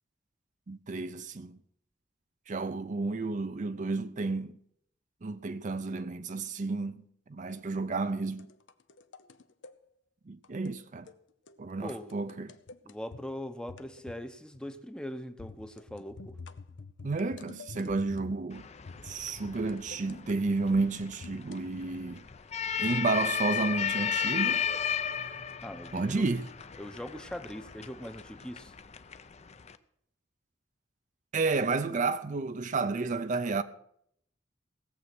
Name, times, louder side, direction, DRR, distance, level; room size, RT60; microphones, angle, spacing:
voice 1, 0.7-1.6 2.5-4.5 5.2-7.0 7.3-8.5 10.3-11.1 11.6-12.5 17.0-18.6 19.0-22.2 22.8-24.6 25.9-26.5 31.3-33.6, right 3 dB, 40° right, 0.5 m, -31 dB
sound 1, 8.3-9.7 10.4-10.8 11.0-11.2 11.5-11.6 11.9-13.2 13.7-14.3 14.5-14.8 15.4-18.5 18.9-21.6, left 4 dB, 80° left, 0.7 m, -48 dB
voice 2, 11.8-12.2 12.8-16.4 25.6-26.3 26.8-28.7, equal, 5° left, 0.8 m, -41 dB
sound 2, 18.5-29.8, left 8 dB, 35° left, 0.6 m, -35 dB
18.0 x 7.6 x 6.0 m
head